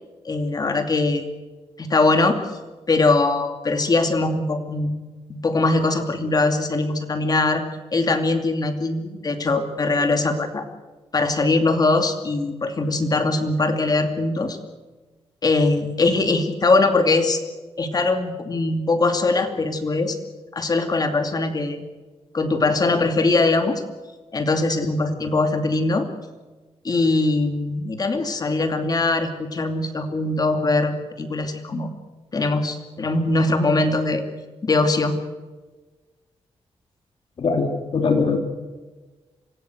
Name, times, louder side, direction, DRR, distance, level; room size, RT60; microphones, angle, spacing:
voice 1, 0.2-1.3 1.8-2.4 2.9-4.9 5.3-7.6 7.9-10.6 11.1-14.6 15.4-17.4 17.8-20.2 20.5-21.8 22.3-23.8 24.3-26.1 26.8-31.9 32.3-34.2 34.6-35.1, left 3 dB, 40° left, 6 dB, 2.6 m, -21 dB
voice 2, 37.4-38.4, left 4 dB, 55° left, 4 dB, 2.7 m, -21 dB
26.0 x 16.5 x 8.0 m, 1.3 s
wide cardioid pair, 120°, 11 cm